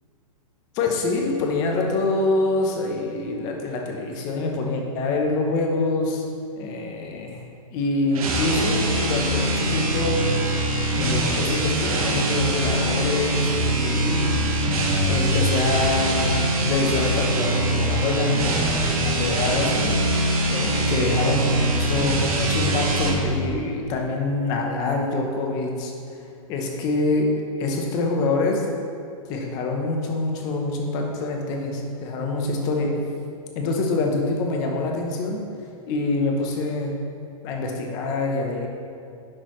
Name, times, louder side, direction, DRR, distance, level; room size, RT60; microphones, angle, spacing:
voice 1, 0.7-6.2 6.6-7.4 7.7-10.2 10.9-14.4 15.1-16.4 16.6-19.9 20.5-25.9 26.5-27.3 27.6-28.6 29.3-32.9 33.5-35.5 35.9-37.0 37.4-38.7, left 3 dB, 20° left, 1 dB, 0.7 m, -25 dB
sound 1, 8.1-23.2, right 1 dB, 75° right, 1.7 m, -23 dB
10.5 x 6.1 x 3.1 m, 2.4 s
hypercardioid pair, 175°, 18 cm